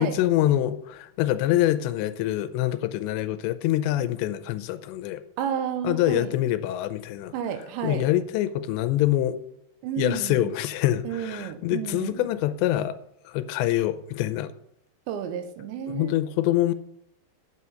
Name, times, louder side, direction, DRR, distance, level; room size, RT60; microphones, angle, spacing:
voice 1, 0.0-5.2 5.8-7.3 7.8-9.4 10.0-13.0 13.3-14.5 15.9-16.7, left 13 dB, 90° left, 13 dB, 2.9 m, -25 dB
voice 2, 5.4-6.3 7.3-8.1 9.8-10.5 11.0-12.3 15.1-16.2, right 8 dB, 85° right, 8 dB, 3.3 m, -31 dB
9.6 x 8.0 x 5.7 m, 0.75 s
omnidirectional pair, 5.0 m